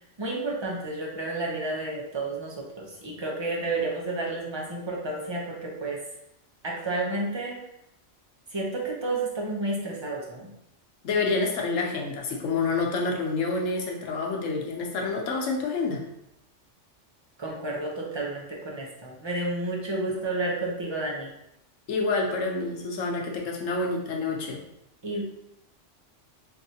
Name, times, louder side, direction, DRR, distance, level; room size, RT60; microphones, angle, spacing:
voice 1, 0.2-6.0 6.6-7.6 8.5-10.5 17.4-21.3 25.0-25.2, right 2 dB, 30° right, -2 dB, 0.6 m, -31 dB
voice 2, 11.0-16.0 21.9-24.6, left 3 dB, 90° left, 0 dB, 1.1 m, -28 dB
4.6 x 2.6 x 2.7 m, 0.82 s
omnidirectional pair, 1.3 m